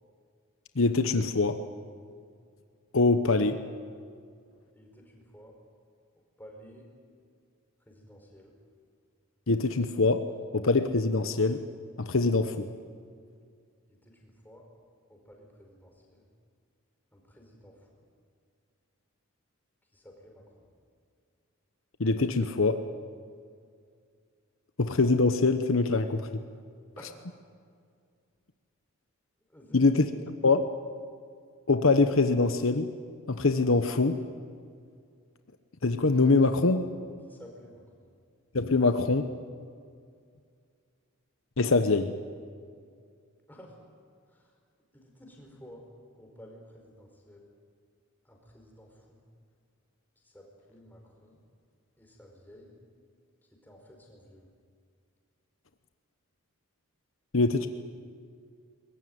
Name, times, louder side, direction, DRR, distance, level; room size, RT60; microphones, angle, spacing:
voice 1, 0.8-1.6 2.9-3.6 9.5-10.3 10.5-11.6 12.0-12.7 22.0-22.8 24.8-26.2 29.7-30.1 30.4-30.7 31.7-32.9 33.3-34.2 35.8-36.8 38.5-39.3 41.6-42.1 57.3-57.7, left 3 dB, 70° left, 9 dB, 1.0 m, -23 dB
voice 2, 4.7-5.5 6.4-6.9 7.9-8.5 14.0-14.6 15.1-16.3 17.1-17.9 19.9-20.7 27.0-27.1 29.5-29.9 37.3-38.1 43.5-43.7 44.3-44.5 44.9-45.8 46.1-47.4 48.2-49.2 50.2-51.4 52.0-52.7 53.6-54.4, equal, 10° left, 0 dB, 4.7 m, -53 dB
22.5 x 20.5 x 9.5 m, 2.2 s
head